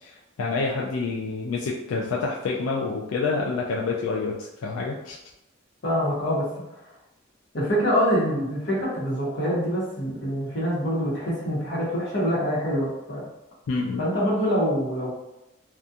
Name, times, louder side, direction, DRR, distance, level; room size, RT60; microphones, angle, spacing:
voice 1, 0.0-5.2 13.7-14.0, left 4 dB, 90° left, -2 dB, 0.3 m, -28 dB
voice 2, 5.8-6.5 7.5-13.3 14.0-15.1, equal, 60° left, -6 dB, 1.0 m, -25 dB
2.4 x 2.3 x 2.7 m, 0.90 s
head